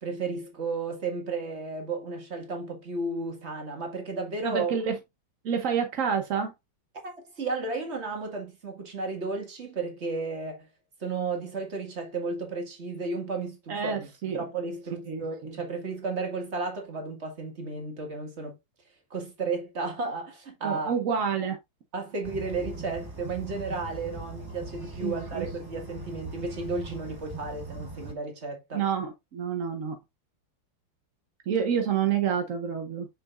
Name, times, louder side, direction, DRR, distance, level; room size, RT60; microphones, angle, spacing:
voice 1, 0.0-4.7 7.0-10.7 11.0-18.6 19.1-20.9 21.9-28.8, right 3 dB, 30° right, 1.9 m, -33 dB
voice 2, 4.4-5.0 5.4-6.5 13.7-14.4 15.1-15.5 20.6-21.6 25.0-25.5 28.7-30.0 31.5-33.1, right 7 dB, 55° right, 0.9 m, -28 dB
sound 1, 22.2-28.1, right 3 dB, 15° right, 0.8 m, -40 dB
6.9 x 5.9 x 2.4 m
omnidirectional pair, 2.4 m